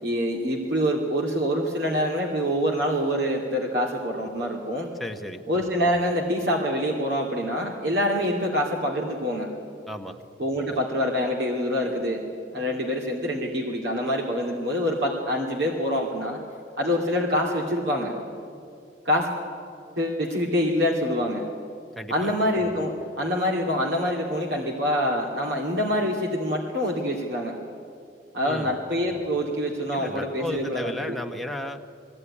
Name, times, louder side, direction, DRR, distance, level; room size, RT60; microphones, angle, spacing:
voice 1, 0.0-4.9 5.5-9.5 10.4-16.4 16.8-18.1 19.0-19.3 20.0-21.4 22.1-27.5 28.3-31.2, equal, 70° right, -2 dB, 2.5 m, -26 dB
voice 2, 4.9-5.5 9.9-10.2 22.0-22.1 28.4-28.8 29.9-31.8, left 1 dB, ahead, 3 dB, 1.1 m, -34 dB
21.0 x 15.5 x 9.9 m, 2.4 s
head